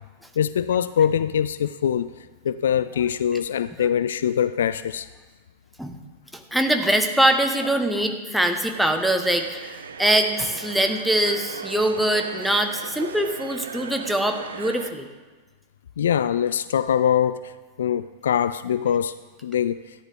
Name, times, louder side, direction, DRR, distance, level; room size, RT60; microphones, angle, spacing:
voice 1, 0.4-2.1 2.4-5.1 16.0-17.5 17.8-19.1 19.4-19.8, left 9 dB, 65° left, 15 dB, 0.3 m, -23 dB
voice 2, 6.3-15.0, right 1 dB, ahead, 5 dB, 1.1 m, -23 dB
sound 1, 8.7-14.9, right 6 dB, 70° right, 0.6 m, -37 dB
14.0 x 10.0 x 3.5 m, 1.3 s
figure-of-eight pair, 90°, 0 cm